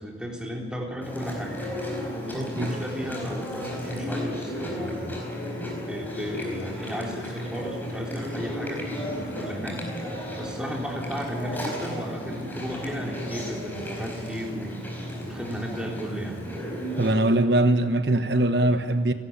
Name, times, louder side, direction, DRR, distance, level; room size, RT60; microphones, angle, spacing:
voice 1, 0.0-1.6 2.3-5.2 5.8-9.8 10.4-14.8 15.2-16.4, equal, 5° right, -1 dB, 3.5 m, -34 dB
Chewing mastication, 1.0-17.1, equal, 10° left, 4.8 m, -34 dB
voice 2, 17.0-19.1, right 1 dB, 65° right, 9 dB, 1.1 m, -21 dB
29.5 x 12.5 x 8.7 m, 2.1 s
head